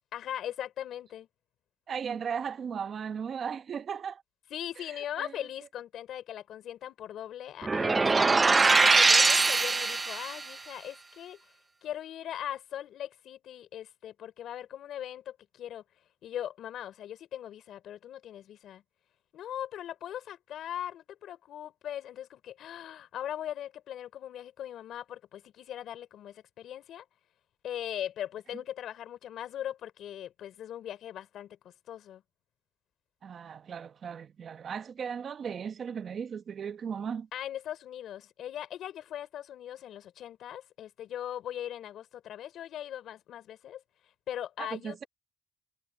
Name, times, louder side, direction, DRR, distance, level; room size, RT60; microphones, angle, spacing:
voice 1, 0.1-1.3 4.5-11.4 11.8-15.8 16.2-18.8 19.3-27.0 27.6-31.6 31.9-32.2 37.3-43.8 44.3-45.1, left 11 dB, 75° left, 4.1 m, -40 dB
voice 2, 1.9-4.2 4.8-5.5 33.2-37.3 44.6-45.0, right 7 dB, 55° right, 1.1 m, -37 dB
sound 1, 7.6-10.4, right 3 dB, 25° right, 0.8 m, -22 dB
cardioid pair, 90°, 0 cm